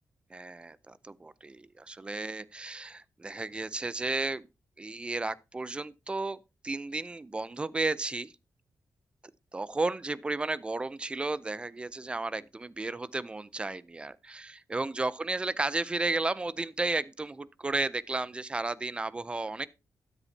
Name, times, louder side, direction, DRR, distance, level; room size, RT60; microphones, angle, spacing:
voice 1, 0.3-4.5 4.8-6.4 6.6-8.3 9.5-19.7, right 3 dB, 15° right, 0.4 m, -33 dB
12.5 x 10.0 x 2.7 m
wide cardioid pair, 160°, 6 cm